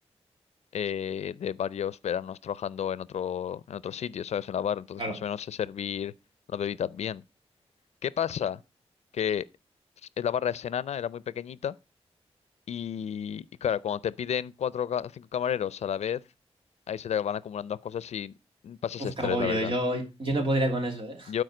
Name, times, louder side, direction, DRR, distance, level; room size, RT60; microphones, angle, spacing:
voice 1, 0.7-6.1 6.5-7.2 8.0-8.6 9.1-9.5 10.2-11.8 12.7-16.2 16.9-18.3 18.6-19.7 21.3-21.4, left 9 dB, 85° left, 0.4 m, -31 dB
voice 2, 19.0-21.3, right 1 dB, 50° right, 2.6 m, -28 dB
12.0 x 4.9 x 4.9 m
wide cardioid pair, 180°, 11 cm